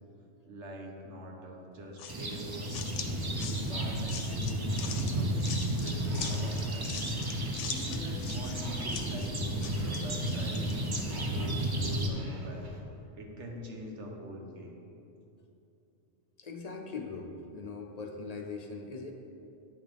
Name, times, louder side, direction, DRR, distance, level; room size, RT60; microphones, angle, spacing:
voice 1, 0.5-3.1 3.6-7.0 7.7-10.7 11.1-12.7 13.1-14.8, equal, 75° right, 0 dB, 1.3 m, -44 dB
sound 1, 2.0-11.2, left 7 dB, 85° left, 0.9 m, -42 dB
sound 2, 2.1-12.1, right 1 dB, 30° right, 0.5 m, -33 dB
sound 3, 2.6-12.8, right 1 dB, 45° right, 1.0 m, -48 dB
voice 2, 16.4-19.1, left 4 dB, 45° left, 2 dB, 0.6 m, -41 dB
9.5 x 6.2 x 3.4 m, 2.7 s
omnidirectional pair, 1.2 m